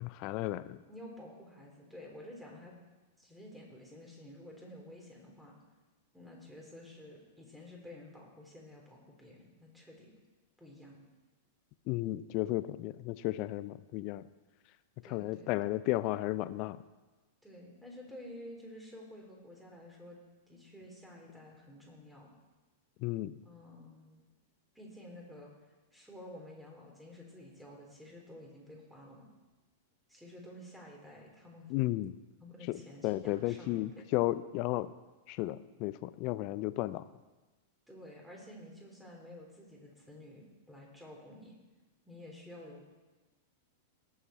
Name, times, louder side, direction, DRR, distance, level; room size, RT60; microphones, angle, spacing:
voice 1, 0.0-0.8 11.9-14.2 15.0-16.8 23.0-23.3 31.7-32.1 32.7-34.9 35.3-37.1, left 17 dB, 45° left, 15 dB, 0.5 m, -34 dB
voice 2, 0.9-2.7 3.2-5.6 6.1-10.1 10.6-11.0 15.0-15.6 17.4-20.2 20.5-22.3 23.4-24.2 24.8-25.5 25.9-29.3 30.1-31.7 32.4-34.0 37.9-41.6 42.1-43.0, left 1 dB, 5° right, -2 dB, 3.7 m, -51 dB
18.5 x 7.4 x 4.3 m, 1.2 s
figure-of-eight pair, 95°, 0 cm